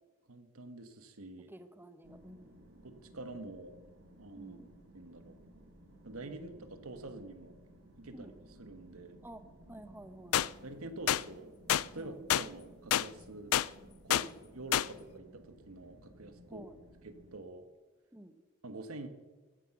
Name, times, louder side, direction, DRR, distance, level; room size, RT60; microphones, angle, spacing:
voice 1, 0.3-1.5 2.8-3.8 4.2-4.6 4.9-5.4 6.0-7.5 8.0-8.3 8.6-9.2 10.6-11.5 11.8-13.5 14.0-14.2 14.5-16.7 17.0-17.7 18.6-19.1, right 2 dB, 90° right, 9 dB, 1.4 m, -46 dB
voice 2, 1.5-2.5 4.4-4.7 8.1-8.3 9.2-9.4 9.7-10.6 11.9-12.2 14.1-14.3 16.5-16.8 18.1-18.3, right 1 dB, 10° right, 9 dB, 0.8 m, -51 dB
sound 1, 2.0-17.4, right 1 dB, 65° right, 2.0 m, -57 dB
sound 2, 10.3-10.5 11.1-11.2 11.7-11.8 12.3-12.5 12.9-13.1 13.5-13.7 14.1-14.3 14.7-14.9, left 11 dB, 75° left, 0.4 m, -27 dB
14.5 x 9.9 x 6.0 m, 1.3 s
head